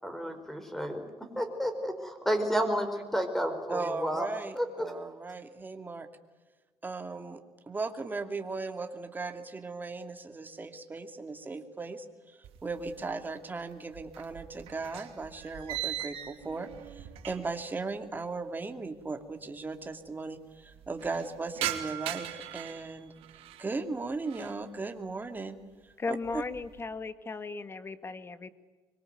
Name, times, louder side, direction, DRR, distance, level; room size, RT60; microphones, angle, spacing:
voice 1, 0.0-4.3 4.5-4.9, equal, 5° left, 7 dB, 4.8 m, -31 dB
voice 2, 3.7-6.1 6.8-23.1 23.6-26.4, right 3 dB, 20° right, 6 dB, 2.6 m, -37 dB
sound 1, 12.4-13.3 13.6-17.7 18.0-18.1 18.9-19.0 19.2-19.3 19.6-20.1 20.5-23.7 24.1-24.6 25.1-25.5 25.9-26.8, right 13 dB, 90° right, 2.8 m, -40 dB
voice 3, 26.0-28.5, left 3 dB, 25° left, 12 dB, 1.8 m, -36 dB
25.0 x 23.5 x 9.3 m, 1.3 s
cardioid pair, 130°, 10 cm